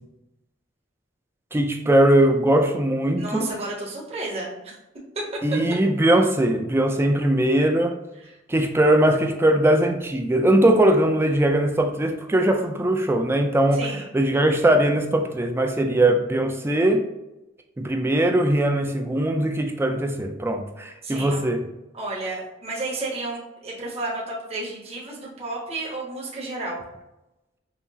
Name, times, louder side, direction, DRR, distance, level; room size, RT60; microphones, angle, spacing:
voice 1, 1.5-3.5 5.4-8.0 8.5-13.9 14.1-17.1 17.8-21.6, right 1 dB, 15° right, 5 dB, 0.3 m, -20 dB
voice 2, 3.2-4.8 8.2-8.3 13.7-14.1 21.0-21.4 21.9-26.8, right 2 dB, 35° right, -5 dB, 1.0 m, -32 dB
5.7 x 2.0 x 2.6 m, 0.95 s
head